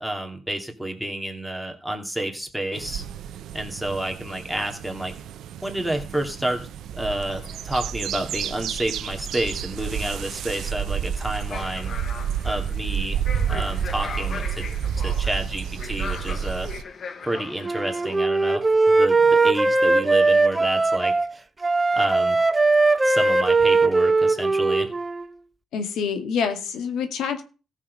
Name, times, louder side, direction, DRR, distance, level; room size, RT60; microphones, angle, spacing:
voice 1, 0.0-3.0 3.5-5.1 5.6-6.7 7.0-12.0 12.4-14.6 15.0-16.7 17.2-21.1 21.9-22.4 23.0-24.9, right 1 dB, ahead, 2 dB, 2.7 m, -29 dB
sound 1, 2.7-16.8, right 8 dB, 80° right, 0.8 m, -30 dB
sound 2, 7.1-18.2, left 5 dB, 50° left, 1.1 m, -40 dB
Wind instrument woodwind instrument, 17.6-21.3 21.6-25.2, right 3 dB, 20° right, 1.0 m, -19 dB
voice 2, 25.7-27.4, left 6 dB, 80° left, 7 dB, 1.9 m, -26 dB
14.5 x 6.6 x 5.4 m, 0.35 s
cardioid pair, 90°, 0 cm